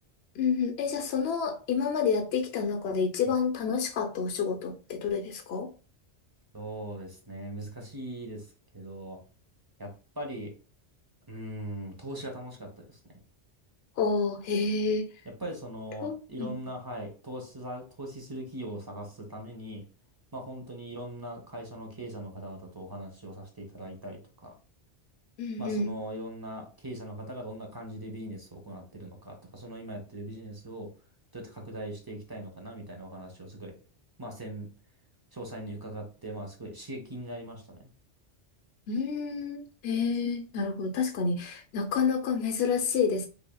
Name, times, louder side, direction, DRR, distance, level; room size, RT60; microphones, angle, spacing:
voice 1, 0.4-5.7 14.0-15.1 16.0-16.6 25.4-25.9 38.9-43.3, left 5 dB, 65° left, 5 dB, 0.9 m, -29 dB
voice 2, 6.5-8.5 8.7-9.2 9.8-9.9 10.2-10.5 11.3-13.0 15.4-19.8 20.3-24.5 25.6-30.9 31.3-33.7 34.2-34.7 35.3-37.6, right 1 dB, 20° right, 1 dB, 0.8 m, -40 dB
4.8 x 2.7 x 2.2 m, 0.36 s
omnidirectional pair, 1.2 m